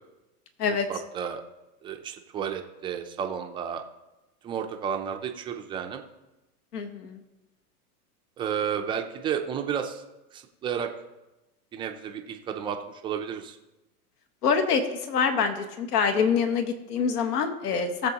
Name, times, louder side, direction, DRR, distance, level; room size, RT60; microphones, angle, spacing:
voice 1, 0.9-1.4 1.8-3.8 4.4-6.0 8.4-10.0 10.3-10.9 11.7-13.6, right 8 dB, 10° right, 5 dB, 0.3 m, -32 dB
voice 2, 6.7-7.2 14.4-14.8 15.1-18.1, left 6 dB, 80° left, 7 dB, 1.5 m, -25 dB
18.5 x 7.2 x 2.8 m, 1.0 s
hypercardioid pair, 130°, 46 cm